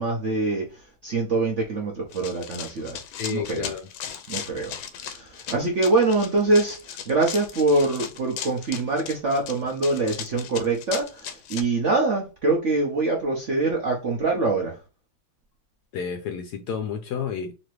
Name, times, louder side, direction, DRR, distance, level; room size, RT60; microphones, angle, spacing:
voice 1, 0.0-3.0 3.3-3.7 4.3-14.8, right 3 dB, 60° right, 0.7 m, -24 dB
Run, 2.1-11.6, left 9 dB, 90° left, 1.4 m, -37 dB
voice 2, 3.1-3.9 15.9-17.5, left 7 dB, 70° left, 0.9 m, -30 dB
4.1 x 2.8 x 3.0 m
omnidirectional pair, 2.2 m